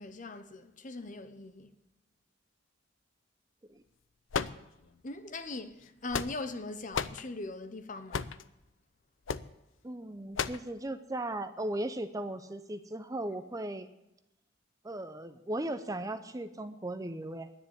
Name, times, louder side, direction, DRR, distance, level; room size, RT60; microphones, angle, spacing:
voice 1, 0.0-1.7 5.0-8.3, left 2 dB, 40° left, 0.9 m, -41 dB
sound 1, 4.3-5.1 5.8-6.6 6.9-7.2 8.1-8.5 9.3-9.5 10.4-10.7, left 6 dB, 80° left, 0.6 m, -34 dB
voice 2, 9.8-13.9 14.8-17.5, right 1 dB, 15° right, 0.6 m, -37 dB
10.0 x 9.9 x 9.9 m
head